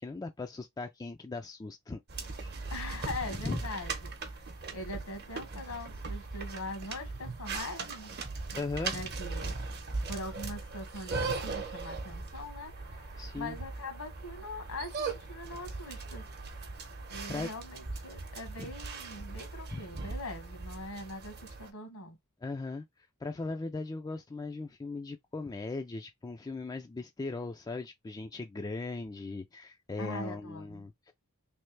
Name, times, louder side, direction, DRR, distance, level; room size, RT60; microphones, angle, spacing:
voice 1, 0.0-2.6 3.4-3.6 8.5-9.1 13.2-13.6 17.3-17.5 18.6-18.7 19.7-19.9 22.4-22.8 23.2-31.1, left 3 dB, 15° left, 0.3 m, -38 dB
sound 1, 2.1-21.7, right 4 dB, 50° right, 0.8 m, -39 dB
voice 2, 2.7-8.2 8.8-9.5 10.1-16.3 17.1-22.2 30.0-30.9, left 2 dB, 80° left, 1.4 m, -42 dB
3.3 x 2.7 x 3.1 m
head